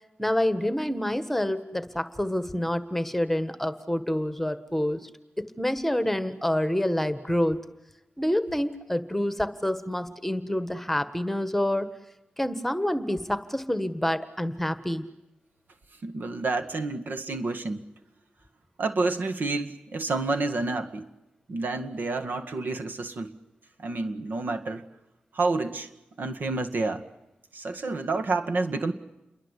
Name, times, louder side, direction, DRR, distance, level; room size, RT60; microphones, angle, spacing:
voice 1, 0.2-5.1 5.4-7.6 8.2-11.9 12.4-15.0, left 1 dB, 5° left, 12 dB, 1.5 m, -27 dB
voice 2, 16.0-17.8 18.8-21.1 21.5-23.3 23.8-24.8 25.3-25.9 26.2-27.0 27.5-28.9, right 3 dB, 75° right, 8 dB, 2.0 m, -29 dB
28.5 x 23.0 x 8.3 m, 0.93 s
wide cardioid pair, 150°, 3 cm